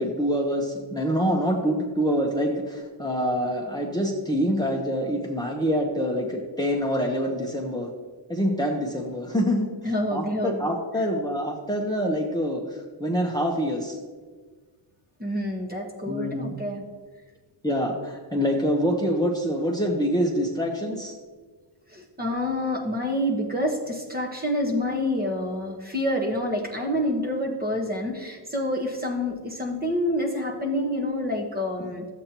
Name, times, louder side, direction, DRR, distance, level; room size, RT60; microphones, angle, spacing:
voice 1, 0.0-7.9 8.3-9.7 10.1-14.0 16.1-16.6 17.6-21.1, equal, 10° left, 0 dB, 0.9 m, -26 dB
voice 2, 9.8-10.7 15.2-16.8 21.9-32.1, left 1 dB, 20° right, 0 dB, 1.2 m, -27 dB
13.0 x 8.0 x 3.0 m, 1.5 s
wide cardioid pair, 100°, 45 cm